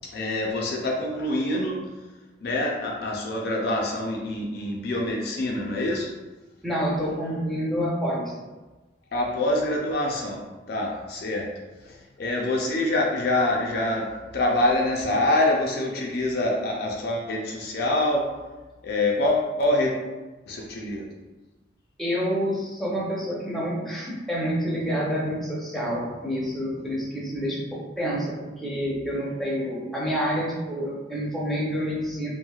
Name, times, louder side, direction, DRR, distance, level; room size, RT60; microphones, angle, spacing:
voice 1, 0.1-1.9 2.4-6.1 9.1-11.5 11.8-18.3 18.8-20.0 20.5-21.1, left 1 dB, 55° left, -1 dB, 0.4 m, -25 dB
voice 2, 6.6-8.3 22.0-32.3, equal, ahead, -6 dB, 0.6 m, -28 dB
3.0 x 2.6 x 2.3 m, 1.2 s
head